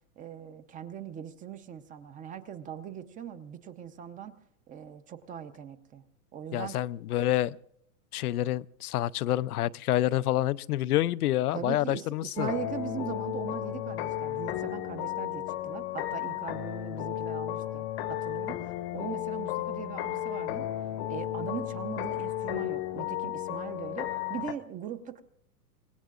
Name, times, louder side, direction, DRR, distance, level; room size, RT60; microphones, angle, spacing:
voice 1, 0.2-4.4 4.7-6.0 6.3-6.8 11.5-20.7 21.1-25.2, right 9 dB, 20° right, 11 dB, 0.7 m, -40 dB
voice 2, 6.5-7.6 8.1-12.5, left 14 dB, 80° left, 18 dB, 0.7 m, -28 dB
sound 1, 12.4-24.5, left 13 dB, 45° left, 0.9 m, -34 dB
25.5 x 19.5 x 2.5 m, 0.71 s
hypercardioid pair, 140°, 44 cm